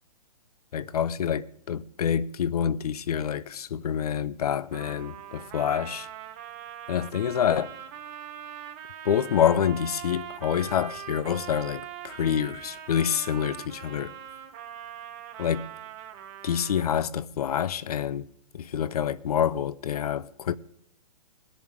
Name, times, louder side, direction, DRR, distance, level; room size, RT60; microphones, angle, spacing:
voice 1, 0.7-6.1 6.9-7.7 9.0-14.1 15.4-15.6 16.4-18.3 18.5-20.6, left 8 dB, 65° left, 0.7 m, -27 dB
Trumpet, 4.7-17.2, right 10 dB, 30° right, 1.0 m, -42 dB
20.5 x 7.2 x 4.9 m
hypercardioid pair, 150°, 21 cm